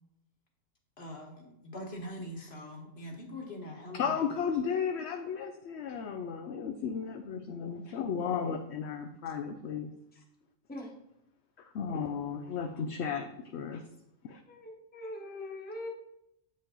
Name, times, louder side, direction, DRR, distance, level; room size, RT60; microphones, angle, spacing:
voice 1, 1.0-4.3, left 1 dB, 50° left, 0 dB, 1.7 m, -43 dB
voice 2, 3.9-9.9 11.6-13.8 14.2-14.4, left 6 dB, 65° left, 6 dB, 0.8 m, -34 dB
voice 3, 14.5-15.9, left 1 dB, 10° left, -1 dB, 1.1 m, -41 dB
8.2 x 5.3 x 3.8 m, 0.84 s
omnidirectional pair, 1.4 m